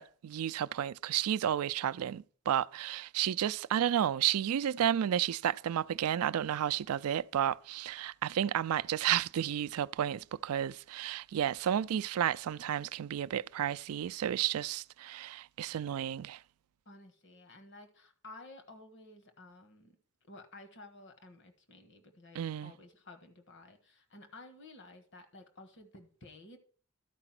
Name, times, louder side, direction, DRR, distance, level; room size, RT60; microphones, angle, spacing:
voice 1, 0.0-16.4 22.3-22.7, right 10 dB, 85° right, 0.3 m, -32 dB
voice 2, 16.8-20.0 20.2-26.6, left 2 dB, 55° left, 1.4 m, -53 dB
12.5 x 4.9 x 5.9 m
head